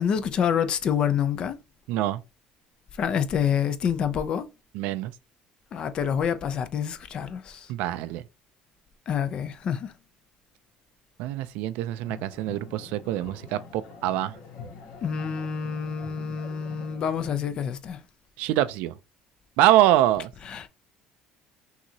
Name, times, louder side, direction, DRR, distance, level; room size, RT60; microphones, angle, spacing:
voice 1, 0.0-1.6 3.0-4.4 5.7-7.7 9.1-9.9 15.0-18.0 20.5-20.7, left 8 dB, 35° left, 0.4 m, -27 dB
voice 2, 1.9-2.2 4.7-5.1 7.7-8.2 11.2-14.4 18.4-18.9 19.6-20.3, right 13 dB, 75° right, 0.3 m, -24 dB
sound 1, 12.0-17.4, left 4 dB, 80° left, 1.9 m, -45 dB
5.9 x 2.7 x 2.7 m
cardioid pair, 160°, 3 cm